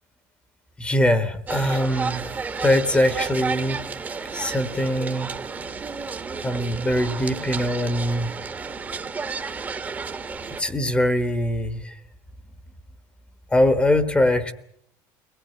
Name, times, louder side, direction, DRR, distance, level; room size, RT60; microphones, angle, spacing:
voice 1, 0.8-2.3 2.6-3.8 4.3-5.3 6.4-8.3 10.6-11.8 13.5-14.5, left 1 dB, 15° left, 12 dB, 1.4 m, -22 dB
sound 1, 1.5-10.6, right 4 dB, 20° right, 1.4 m, -32 dB
23.0 x 18.5 x 9.7 m, 0.70 s
cardioid pair, 145°, 9 cm